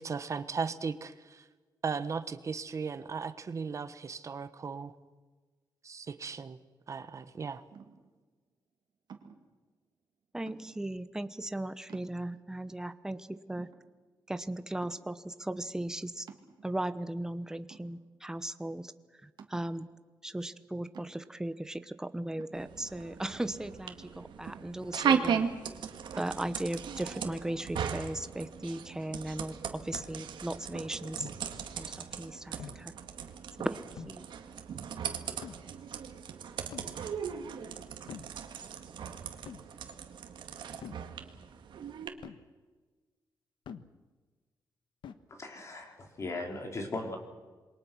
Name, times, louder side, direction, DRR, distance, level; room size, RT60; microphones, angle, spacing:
voice 1, 0.0-1.4 1.8-4.9 5.8-6.6 6.9-7.6, right 5 dB, 40° right, 12 dB, 1.2 m, -37 dB
sound 1, 7.7-8.2 9.1-9.5 10.5-11.0 11.5-11.6 11.9-12.5 13.1-13.2 13.6-14.3 14.8-15.2 16.3-17.0 17.7-18.3 18.7-18.8 19.4-19.8 20.9-21.4 22.4-23.3 24.5-25.1 26.2-26.4, right 6 dB, 65° right, 2.5 m, -52 dB
voice 2, 10.3-13.7 14.3-16.3 16.6-18.9 19.2-19.9 20.2-25.4 26.1-31.3 31.8-32.9 33.6-34.3, right 1 dB, 5° right, 11 dB, 0.9 m, -37 dB
sound 2, 22.5-42.1, right 7 dB, 85° right, 2.1 m, -37 dB
sound 3, 28.7-28.8 29.9-30.2 31.2-31.6 32.6-33.0 34.0-34.3 35.4-35.7 36.7-37.0 38.1-38.4 39.5-39.7 40.8-41.1 42.2-42.5 43.7-44.0 45.0-45.1, left 7 dB, 90° left, 1.3 m, -46 dB
voice 3, 45.3-47.2, left 2 dB, 40° left, 3 dB, 4.1 m, -38 dB
27.5 x 22.5 x 6.2 m, 1.3 s
wide cardioid pair, 140°, 8 cm